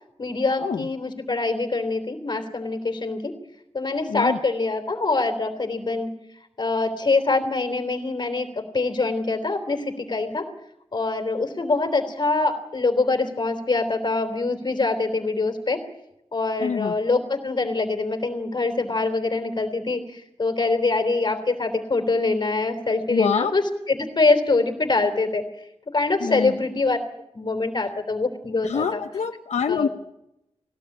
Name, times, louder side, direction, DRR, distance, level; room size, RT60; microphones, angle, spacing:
voice 1, 0.2-3.3 3.7-6.1 6.6-10.4 10.9-15.8 16.3-23.6 23.9-25.4 25.9-27.0 27.3-29.0 29.7-29.9, left 3 dB, 40° left, 6 dB, 3.5 m, -24 dB
voice 2, 4.1-4.4 16.6-16.9 23.1-23.5 26.2-26.5 28.6-29.9, left 6 dB, 80° left, 6 dB, 0.9 m, -25 dB
21.0 x 17.0 x 8.7 m, 0.84 s
wide cardioid pair, 165°, 12 cm